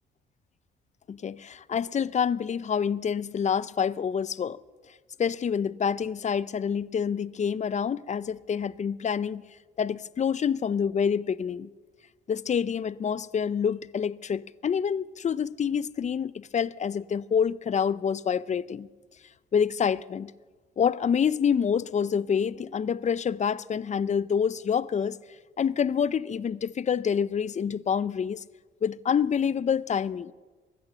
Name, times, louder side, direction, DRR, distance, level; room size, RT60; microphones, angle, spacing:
voice 1, 1.1-4.6 5.2-9.4 9.8-11.7 12.3-18.9 19.5-20.3 20.8-25.2 25.6-28.4 28.8-30.3, left 7 dB, 35° left, 0.5 m, -27 dB
22.5 x 9.0 x 7.0 m
cardioid pair, 90°, 20 cm